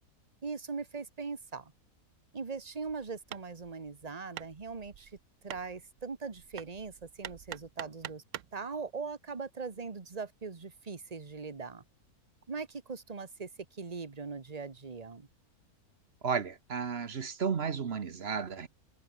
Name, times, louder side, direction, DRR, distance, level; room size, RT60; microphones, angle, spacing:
voice 1, 0.4-1.7 2.3-5.1 5.4-8.2 8.5-11.8 12.5-15.3, right 4 dB, 25° right, 1.5 m, -40 dB
Hammer, 2.6-8.6, right 12 dB, 65° right, 0.9 m, -47 dB
voice 2, 16.2-18.7, right 6 dB, 45° right, 1.2 m, -33 dB
omnidirectional pair, 1.6 m